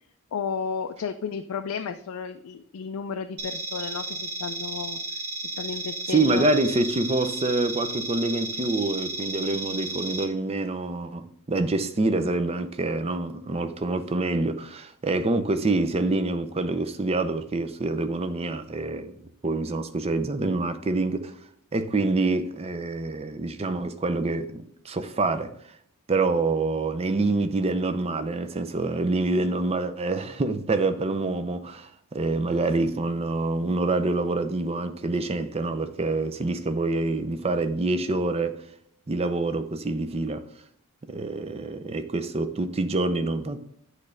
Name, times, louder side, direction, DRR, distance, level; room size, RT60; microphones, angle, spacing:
voice 1, 0.3-5.0 5.4-6.5, left 6 dB, 75° left, 0.4 m, -33 dB
sound 1, 3.4-10.2, right 3 dB, 80° right, 1.3 m, -33 dB
voice 2, 6.1-19.2 19.4-21.3 21.7-25.5 26.1-38.6 39.1-40.4 41.1-43.6, right 2 dB, 25° right, 0.5 m, -26 dB
8.3 x 3.2 x 5.0 m
head